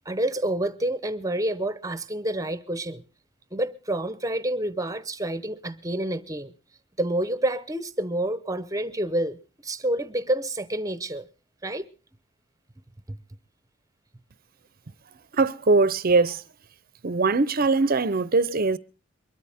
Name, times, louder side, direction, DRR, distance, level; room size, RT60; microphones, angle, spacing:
voice 1, 0.1-3.0 3.5-6.5 7.0-9.4 9.6-11.3 11.6-11.8, right 1 dB, 15° right, 0.9 m, -28 dB
voice 2, 15.3-16.4 17.0-18.8, right 3 dB, 45° right, 0.7 m, -21 dB
23.5 x 13.0 x 3.5 m
head